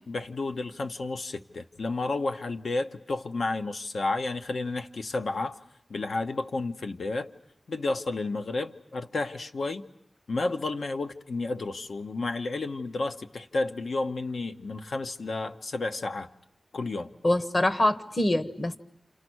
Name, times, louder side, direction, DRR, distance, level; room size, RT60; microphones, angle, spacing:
voice 1, 0.1-5.6 5.9-7.3 7.7-9.8 10.3-16.3 16.7-17.1, left 3 dB, 75° left, 1.0 m, -31 dB
voice 2, 17.2-18.8, left 1 dB, 40° left, 1.2 m, -24 dB
28.5 x 28.5 x 6.3 m
wide cardioid pair, 100°, 0 cm